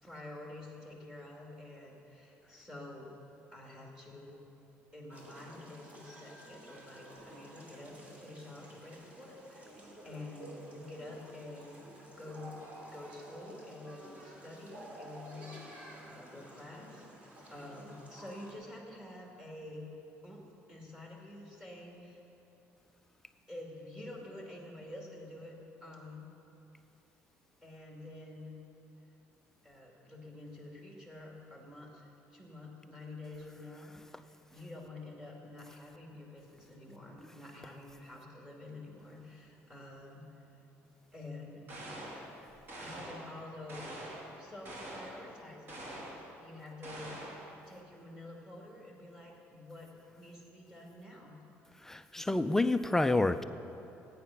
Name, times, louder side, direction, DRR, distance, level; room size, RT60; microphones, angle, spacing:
voice 1, 0.0-3.1 3.5-4.4 4.9-11.9 12.2-12.6 12.9-19.9 20.2-22.2 23.5-26.3 27.6-28.6 29.6-40.3 41.1-41.7 42.8-44.1 44.4-45.9 46.4-47.2 47.6-51.4, left 2 dB, 10° right, -2 dB, 2.2 m, -48 dB
sound 1, 5.1-18.5, right 1 dB, 30° right, 3.0 m, -52 dB
sound 2, 41.7-42.3 42.7-43.3 43.7-44.3 44.6-45.2 45.7-46.2 46.8-47.5, right 1 dB, 45° right, 2.7 m, -44 dB
voice 2, 51.8-53.4, left 2 dB, 10° left, 10 dB, 0.4 m, -28 dB
16.5 x 9.4 x 5.7 m, 2.9 s
cardioid pair, 130°, 5 cm